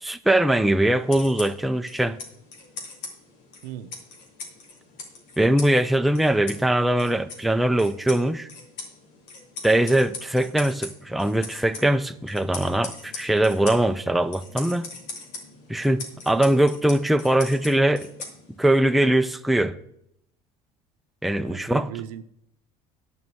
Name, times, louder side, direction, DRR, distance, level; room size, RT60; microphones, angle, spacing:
voice 1, 0.0-2.2 5.4-8.5 9.6-14.9 15.7-18.1 18.6-19.8 21.2-21.9, right 1 dB, ahead, 0.5 m, -21 dB
sound 1, 1.0-18.8, left 3 dB, 75° left, 2.4 m, -41 dB
voice 2, 3.6-3.9 21.4-22.2, right 11 dB, 85° right, 0.6 m, -37 dB
9.4 x 5.6 x 7.7 m
hypercardioid pair, 80°, 20 cm